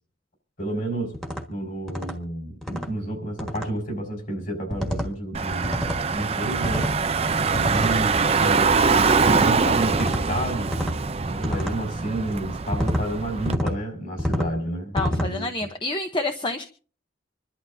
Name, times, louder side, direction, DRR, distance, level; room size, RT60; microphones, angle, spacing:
voice 1, 0.6-1.2 1.5-5.8 6.1-6.9 7.5-10.7 11.2-15.5, right 1 dB, 45° left, 3 dB, 5.1 m, -30 dB
fingers drumming on wooden table (clean), 1.1-1.4 1.9-2.2 2.6-2.9 3.4-3.7 4.7-5.1 5.6-6.0 6.6-7.0 7.5-8.0 9.2-9.5 9.9-10.2 10.7-11.0 11.4-11.8 12.7-13.0 13.5-13.8 14.2-14.5 15.0-15.3, equal, ahead, 1.5 m, -27 dB
Car / Engine, 5.3-13.5, right 4 dB, 30° right, 0.5 m, -23 dB
voice 2, 14.9-16.7, left 2 dB, 25° left, 5 dB, 0.8 m, -28 dB
26.5 x 11.5 x 2.7 m, 0.41 s
head